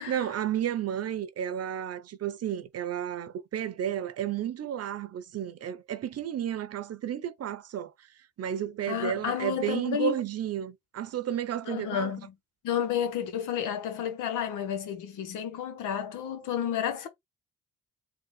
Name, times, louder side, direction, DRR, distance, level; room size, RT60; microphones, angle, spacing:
voice 1, 0.1-8.1 8.4-12.1, right 10 dB, 55° right, 0.8 m, -32 dB
voice 2, 8.9-10.1 11.7-12.3 12.6-17.1, left 9 dB, 85° left, 1.1 m, -31 dB
3.9 x 2.4 x 4.0 m
cardioid pair, 90°, 30 cm